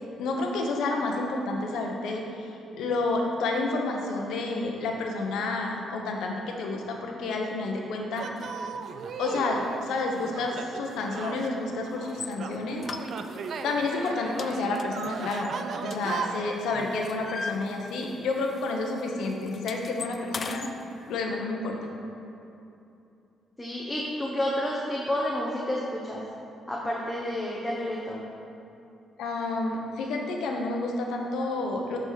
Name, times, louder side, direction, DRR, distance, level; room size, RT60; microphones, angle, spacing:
voice 1, 0.2-2.5 2.8-8.3 9.2-12.8 13.6-15.5 15.8-20.7 21.1-21.8 29.2-32.0, left 3 dB, 80° left, 1 dB, 1.0 m, -30 dB
sound 1, 8.2-16.6, right 5 dB, 60° right, 0.4 m, -37 dB
sound 2, 12.1-12.3 12.8-13.6 13.9-14.1 14.4-16.4 16.8-18.2 18.5-18.7 19.0-20.7, left 4 dB, 40° left, 0.4 m, -38 dB
voice 2, 23.6-26.2 26.7-28.2, left 1 dB, 10° left, -4 dB, 1.0 m, -30 dB
11.0 x 4.8 x 4.0 m, 2.8 s
cardioid pair, 90°, 0 cm